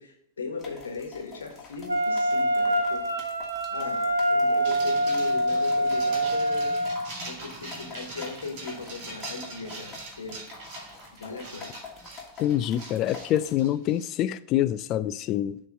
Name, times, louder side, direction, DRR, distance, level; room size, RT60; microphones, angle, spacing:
voice 1, 0.0-3.2 3.7-6.9 7.2-10.4 11.1-11.8, left 4 dB, 75° left, 1.2 m, -38 dB
sound 1, 0.6-13.6, left 5 dB, 20° left, 1.5 m, -47 dB
Wind instrument woodwind instrument, 1.9-7.1, right 1 dB, 85° right, 0.6 m, -25 dB
sound 2, 4.6-14.2, right 2 dB, 45° right, 2.2 m, -42 dB
voice 2, 12.4-15.6, left 12 dB, 40° left, 0.3 m, -26 dB
6.7 x 3.2 x 5.4 m
figure-of-eight pair, 95°, 0 cm